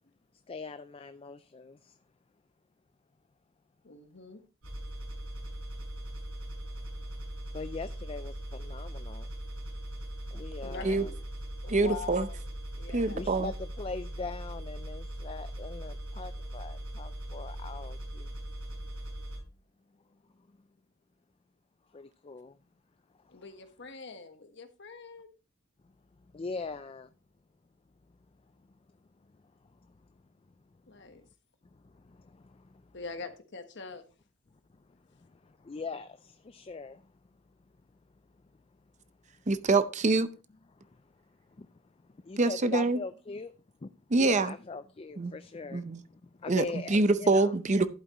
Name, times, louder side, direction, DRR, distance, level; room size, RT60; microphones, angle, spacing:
voice 1, 0.5-2.0 7.5-9.3 10.3-11.1 13.1-18.3 21.9-22.6 26.3-27.1 31.7-32.8 35.2-37.0 40.8-41.0 41.6-41.8 42.2-43.5 43.8-43.9 44.2-47.5, left 4 dB, 25° left, 0.4 m, -41 dB
voice 2, 3.8-4.4 10.6-11.2 11.6-12.4 12.8-13.2 23.3-25.3 30.9-31.3 32.9-34.0, left 4 dB, 55° left, 1.3 m, -43 dB
sound 1, 4.6-19.4, right 1 dB, 85° right, 5.6 m, -40 dB
voice 3, 11.7-12.3 12.9-13.5 39.5-40.3 42.4-43.0 44.1-44.5 45.2-45.3 45.7-46.0 46.5-47.9, right 3 dB, 35° right, 0.6 m, -25 dB
11.5 x 8.2 x 3.0 m
head